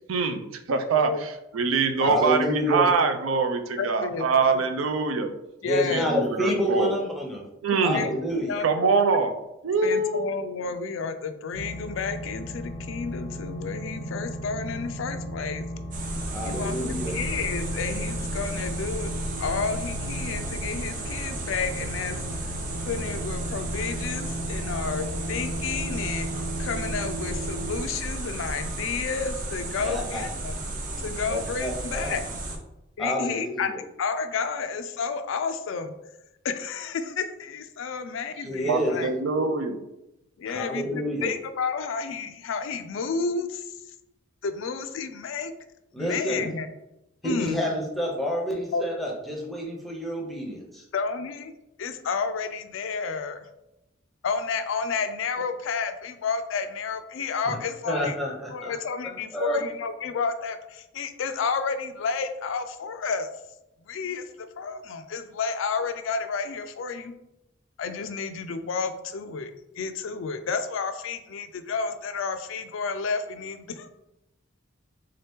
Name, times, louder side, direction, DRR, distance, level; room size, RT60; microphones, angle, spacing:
voice 1, 0.1-5.3 5.9-6.9 7.6-8.0 8.6-9.3 9.6-10.3 38.7-39.8, right 4 dB, 85° right, 7 dB, 0.5 m, -24 dB
voice 2, 2.0-2.9 5.6-7.4 7.8-8.6 16.3-17.1 29.8-30.2 31.3-32.2 33.0-33.8 38.4-38.9 40.5-41.3 45.9-46.5 47.2-50.8 57.9-58.7 59.3-59.6, equal, ahead, -2 dB, 0.7 m, -28 dB
voice 3, 3.8-4.3 4.5-4.6 5.6-6.1 7.7-8.1 8.5-8.9 9.8-15.7 16.4-19.1 19.4-22.5 22.9-26.3 26.6-30.6 31.0-32.2 33.0-33.7 34.0-35.9 36.4-39.1 40.4-43.8 44.4-45.5 46.0-46.7 47.2-47.6 48.7-48.8 50.9-51.5 51.8-53.5 54.2-58.1 58.5-63.3 63.9-67.1 67.8-73.9, left 5 dB, 75° left, 9 dB, 0.4 m, -31 dB
sound 1, 11.5-27.8, equal, 65° right, 1.1 m, -35 dB
sound 2, 15.9-32.6, right 2 dB, 40° right, 0.6 m, -34 dB
3.7 x 2.8 x 3.4 m, 0.90 s
head